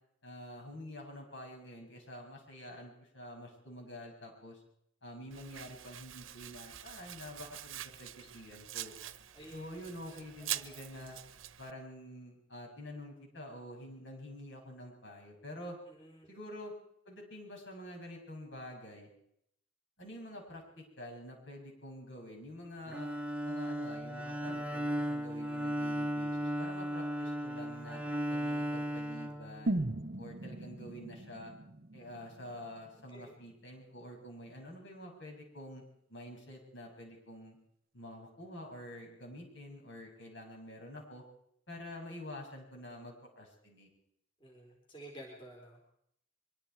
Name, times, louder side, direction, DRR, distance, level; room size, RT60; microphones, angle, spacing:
voice 1, 0.2-4.6 5.0-8.9 9.5-11.2 11.6-15.8 16.3-16.7 17.1-19.1 20.0-23.1 23.4-28.0 28.3-29.8 30.2-31.5 31.9-35.8 36.1-37.6 37.9-41.2 41.7-43.9, left 1 dB, 60° left, 0 dB, 7.2 m, -48 dB
Domestic sounds home sounds, 5.3-11.7, right 12 dB, 75° right, 1.0 m, -45 dB
voice 2, 15.9-16.3 33.1-33.4 44.4-45.9, right 1 dB, 25° left, -1 dB, 4.2 m, -51 dB
Bowed string instrument, 22.9-30.0, equal, 5° right, 1.2 m, -36 dB
sound 1, 29.7-33.6 33.9-34.0, right 1 dB, 45° right, 0.8 m, -38 dB
24.0 x 24.0 x 4.8 m, 0.73 s
head